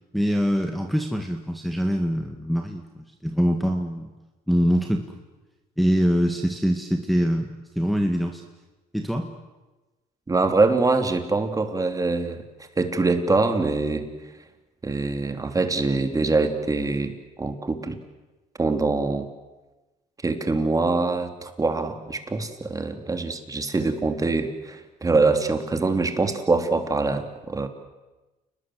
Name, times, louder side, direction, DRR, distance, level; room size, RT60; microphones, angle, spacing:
voice 1, 0.1-4.1 4.5-5.0 5.8-8.4 8.9-9.3, equal, ahead, 3 dB, 2.0 m, -24 dB
voice 2, 10.3-12.4 12.8-14.1 14.8-18.0 18.6-19.3 20.2-27.7, right 3 dB, 20° right, 6 dB, 2.9 m, -24 dB
29.5 x 20.5 x 7.8 m, 1.1 s
cardioid pair, 110°, 17 cm